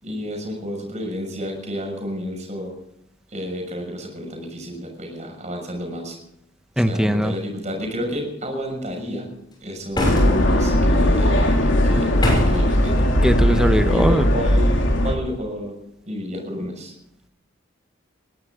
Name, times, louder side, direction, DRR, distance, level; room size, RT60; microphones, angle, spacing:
voice 1, 0.0-2.7 3.3-6.2 6.9-9.3 9.6-13.1 13.9-15.7 16.1-16.9, equal, 35° right, 3 dB, 6.5 m, -31 dB
voice 2, 6.8-7.3 13.2-14.3, equal, 5° right, 8 dB, 1.0 m, -19 dB
sound 1, 9.9-10.7 12.2-12.7, left 1 dB, 25° left, 6.6 m, -22 dB
sound 2, 10.0-15.2, left 1 dB, 70° left, 2.9 m, -18 dB
21.0 x 17.5 x 3.9 m, 0.77 s
head